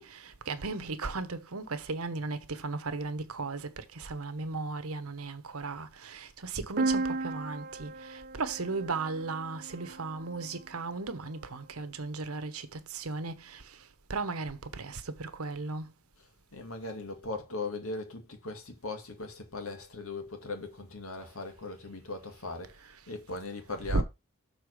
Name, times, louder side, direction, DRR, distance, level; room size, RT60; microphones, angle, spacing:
voice 1, 0.0-13.8 14.1-15.9 22.8-23.0 23.9-24.0, right 3 dB, 80° right, 1.1 m, -36 dB
sound 1, 6.8-10.5, right 3 dB, 40° right, 1.0 m, -35 dB
voice 2, 16.5-22.7 23.1-24.0, left 3 dB, 70° left, 2.1 m, -39 dB
6.8 x 4.1 x 6.4 m
head